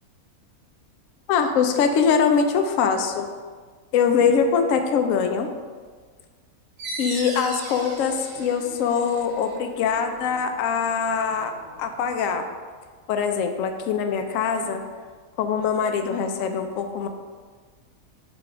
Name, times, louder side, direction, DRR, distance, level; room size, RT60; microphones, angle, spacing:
voice 1, 1.3-3.3 3.9-5.5 7.0-11.5 11.8-12.5 13.1-14.8 15.4-17.1, left 6 dB, 70° left, 6 dB, 0.9 m, -23 dB
sound 1, 6.8-12.1, right 2 dB, 65° right, 1.2 m, -39 dB
5.8 x 3.5 x 4.9 m, 1.5 s
omnidirectional pair, 1.6 m